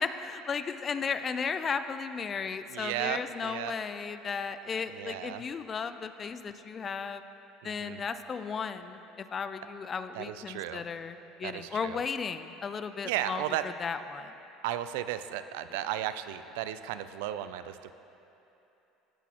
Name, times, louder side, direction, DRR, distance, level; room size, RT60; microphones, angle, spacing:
voice 1, 0.2-7.2 7.6-13.4 13.8-14.3, left 6 dB, 30° left, 11 dB, 0.3 m, -35 dB
voice 2, 2.7-3.8 4.9-5.4 7.6-8.0 10.1-10.8 11.4-12.0 13.0-13.7 14.6-17.9, right 12 dB, 90° right, 12 dB, 0.3 m, -35 dB
15.5 x 6.1 x 2.9 m, 3.0 s
cardioid pair, 130°, 0 cm